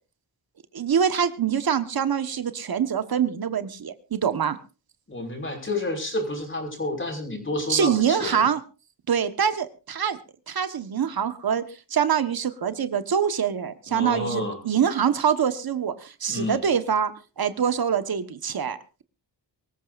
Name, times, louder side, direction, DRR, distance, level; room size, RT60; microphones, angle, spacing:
voice 1, 0.7-4.6 7.7-8.6 9.1-10.2 10.5-11.6 11.9-19.0, right 8 dB, 55° right, 11 dB, 1.4 m, -25 dB
voice 2, 5.1-8.5 13.9-14.6 16.3-16.6, left 2 dB, 30° left, 2 dB, 5.5 m, -30 dB
24.0 x 14.5 x 2.6 m, 0.32 s
cardioid pair, 100°, 43 cm